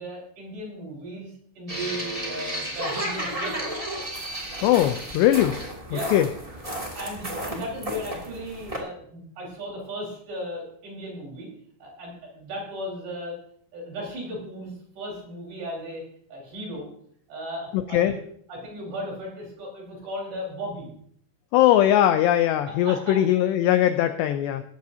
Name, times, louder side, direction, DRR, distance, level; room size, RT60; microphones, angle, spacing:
voice 1, 0.0-3.7 5.9-6.1 6.7-11.5 11.8-13.4 13.7-16.0 16.3-16.9 17.3-18.2 18.5-20.9 22.8-23.2, equal, 55° right, -2 dB, 6.7 m, -36 dB
sound 1, 1.7-8.8, right 1 dB, 15° right, 1.2 m, -33 dB
voice 2, 4.6-5.6 5.9-6.3 17.7-18.1 21.5-24.6, left 12 dB, 90° left, 9 dB, 2.4 m, -20 dB
18.0 x 14.5 x 2.8 m, 0.63 s
omnidirectional pair, 5.8 m